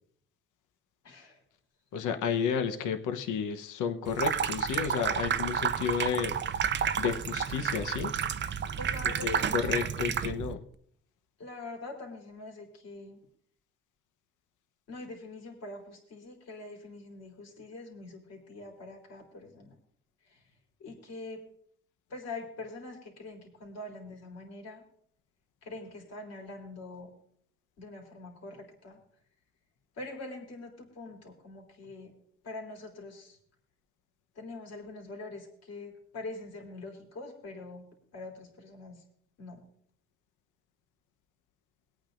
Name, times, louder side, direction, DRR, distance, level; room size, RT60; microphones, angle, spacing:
voice 1, 1.0-1.4 8.8-9.8 11.4-13.2 14.9-19.8 20.2-20.4 20.8-21.4 22.1-24.8 25.6-27.1 27.8-29.0 30.0-32.1 32.4-33.4 34.3-37.8 38.1-39.0 39.4-39.6, left 2 dB, 55° left, 1 dB, 3.1 m, -44 dB
voice 2, 1.9-6.5 7.0-8.1 9.2-10.6, left 7 dB, 80° left, 7 dB, 1.0 m, -32 dB
Water tap faucet / Sink (filling or washing), 4.1-10.5, right 8 dB, 40° right, 0.5 m, -31 dB
23.5 x 8.7 x 2.6 m, 0.62 s
cardioid pair, 90°, 30 cm